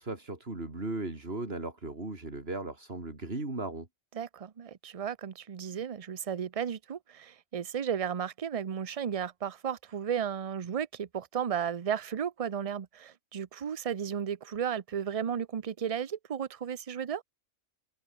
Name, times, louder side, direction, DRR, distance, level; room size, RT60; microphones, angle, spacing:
voice 1, 0.0-3.9, right 2 dB, 55° right, 3.9 m, -37 dB
voice 2, 4.2-17.2, right 8 dB, 35° right, 0.6 m, -34 dB
omnidirectional pair, 1.2 m